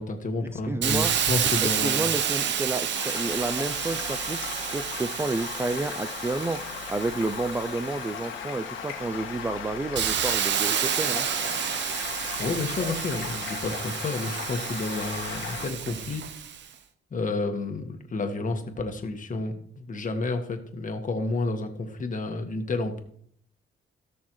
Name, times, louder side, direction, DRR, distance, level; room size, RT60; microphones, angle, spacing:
voice 1, 0.0-2.0 12.4-16.2 17.1-23.0, left 3 dB, 40° left, 5 dB, 1.6 m, -30 dB
voice 2, 0.5-1.1 1.6-11.3, right 2 dB, 10° right, 12 dB, 0.4 m, -30 dB
Hiss, 0.8-8.4 8.9-16.6, right 8 dB, 65° right, 0.9 m, -30 dB
Stream, 2.9-15.7, left 7 dB, 85° left, 1.8 m, -37 dB
17.0 x 6.3 x 3.2 m, 0.65 s
cardioid pair, 90°, 20 cm